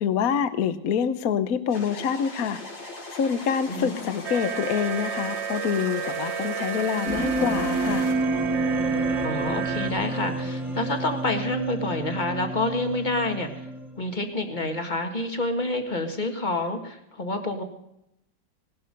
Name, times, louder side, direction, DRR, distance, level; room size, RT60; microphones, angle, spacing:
voice 1, 0.0-2.6 3.1-8.1, left 7 dB, 55° left, 12 dB, 1.3 m, -26 dB
sound 1, 1.7-8.1, left 2 dB, 75° left, 3.8 m, -40 dB
sound 2, 4.2-9.9, right 7 dB, 50° right, 0.9 m, -31 dB
sound 3, 7.1-14.1, right 2 dB, ahead, 1.8 m, -29 dB
voice 2, 9.2-13.7 14.0-17.6, left 2 dB, 25° left, 5 dB, 1.9 m, -28 dB
18.5 x 12.0 x 5.4 m, 0.80 s
omnidirectional pair, 2.1 m